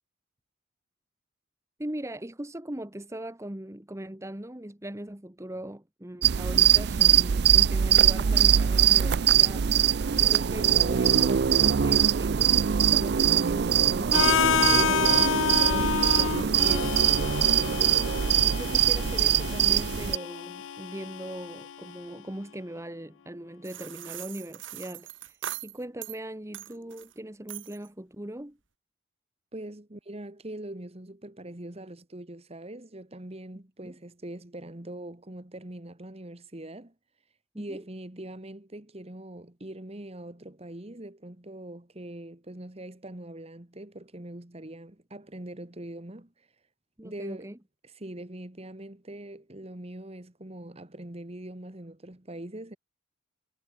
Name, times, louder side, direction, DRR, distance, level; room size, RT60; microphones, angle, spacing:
voice 1, 1.8-18.0 18.4-28.6 33.8-33.9 37.5-37.8 47.0-47.6, right 1 dB, 15° right, 1.2 m, -40 dB
sound 1, 6.2-20.2, right 9 dB, 60° right, 0.5 m, -22 dB
Harmonica, 14.1-22.0, left 8 dB, 80° left, 0.4 m, -29 dB
sound 2, 23.6-26.2 26.5-27.1 27.5-27.9, right 12 dB, 80° right, 2.0 m, -40 dB
voice 2, 29.5-36.9 37.6-46.5 47.0-47.5 47.8-52.8, right 1 dB, 30° right, 1.7 m, -42 dB
head